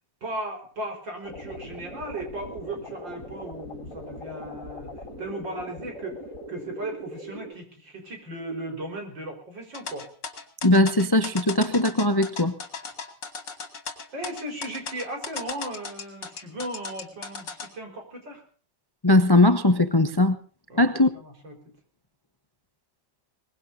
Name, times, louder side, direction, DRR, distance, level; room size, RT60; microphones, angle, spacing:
voice 1, 0.2-4.9 5.2-6.2 6.5-10.1 14.1-18.4 20.7-20.9 21.1-21.6, right 1 dB, 80° right, 5.3 m, -36 dB
sound 1, 1.2-7.5, left 1 dB, 45° left, 4.1 m, -40 dB
sound 2, 9.7-17.7, left 5 dB, 70° left, 3.0 m, -36 dB
voice 2, 10.6-12.5 19.0-20.4 20.8-21.1, left 1 dB, 25° left, 0.5 m, -19 dB
22.5 x 20.5 x 2.7 m
omnidirectional pair, 2.0 m